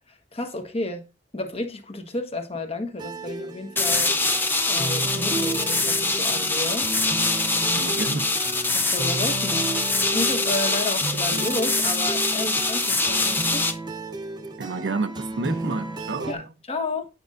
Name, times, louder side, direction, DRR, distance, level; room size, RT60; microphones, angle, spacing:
voice 1, 0.1-1.1 1.3-4.2 4.7-6.9 7.5-8.0 8.7-13.8 16.3-16.4 16.7-17.1, left 2 dB, 35° left, 1.2 m, -32 dB
sound 1, 3.0-16.3, right 2 dB, 25° right, 0.8 m, -33 dB
sound 2, 3.8-13.7, left 3 dB, 10° left, 0.7 m, -24 dB
voice 2, 7.7-8.3 14.6-16.5, right 3 dB, 70° right, 0.6 m, -30 dB
9.2 x 5.3 x 2.5 m
head